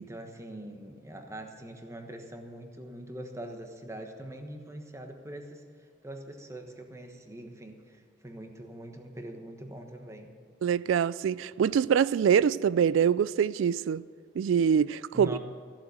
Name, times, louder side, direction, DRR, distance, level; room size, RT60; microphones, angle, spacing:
voice 1, 0.0-5.6 6.0-10.3 15.1-15.4, right 1 dB, 15° right, 1.2 m, -43 dB
voice 2, 10.6-14.0 14.4-15.4, right 7 dB, 90° right, 0.3 m, -24 dB
15.0 x 7.4 x 8.8 m
head